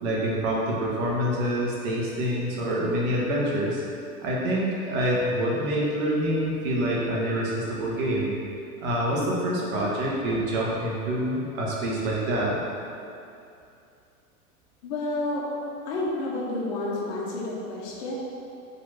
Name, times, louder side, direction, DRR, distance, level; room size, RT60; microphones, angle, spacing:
voice 1, 0.0-3.8 4.2-8.4 8.8-12.6, right 1 dB, 40° right, -4 dB, 1.9 m, -26 dB
voice 2, 14.8-15.5 15.9-18.1, left 2 dB, 45° left, -4 dB, 1.9 m, -30 dB
8.2 x 4.3 x 6.0 m, 2.6 s
figure-of-eight pair, 95°, 44 cm